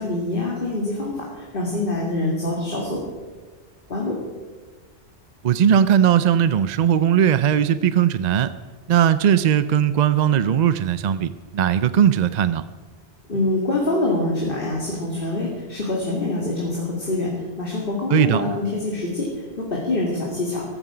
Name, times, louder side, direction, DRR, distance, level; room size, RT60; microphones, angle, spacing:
voice 1, 0.0-3.0 3.9-4.2 13.3-20.6, left 2 dB, 50° left, -2 dB, 2.5 m, -25 dB
voice 2, 5.4-8.5 8.9-12.6 18.1-18.4, right 9 dB, 55° right, 13 dB, 0.5 m, -18 dB
15.0 x 13.5 x 5.0 m, 1.3 s
omnidirectional pair, 1.2 m